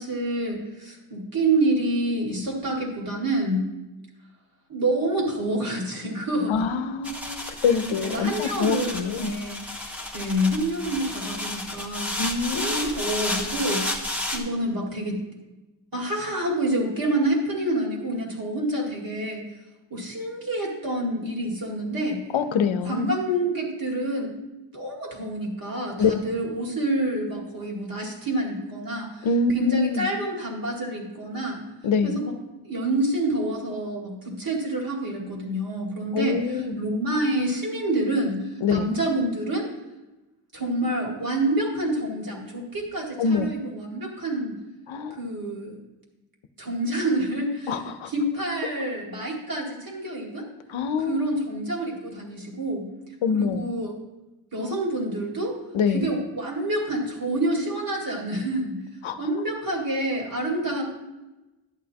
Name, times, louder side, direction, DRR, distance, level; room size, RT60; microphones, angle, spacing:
voice 1, 0.0-3.6 4.7-6.6 8.0-12.1 12.5-15.2 15.9-19.4 19.9-22.2 22.9-24.3 24.7-29.3 29.5-31.6 32.0-32.3 32.6-39.7 40.5-44.6 45.1-45.8 46.6-47.8 48.1-50.5 51.1-52.8 53.3-54.0 54.5-55.6 55.9-58.8 59.2-60.8, right 1 dB, 45° right, -1 dB, 2.2 m, -27 dB
voice 2, 6.5-9.3 12.2-13.0 22.3-23.1 26.0-26.1 29.2-30.1 31.8-32.2 36.1-36.8 38.6-38.9 43.2-43.5 44.9-45.2 47.7-48.1 50.7-51.2 53.2-53.7 55.7-56.1 59.0-59.2, left 5 dB, 75° left, 10 dB, 0.7 m, -25 dB
sound 1, 7.0-14.4, left 1 dB, 5° right, 1.2 m, -32 dB
11.5 x 8.5 x 2.9 m, 1.0 s
wide cardioid pair, 125°, 47 cm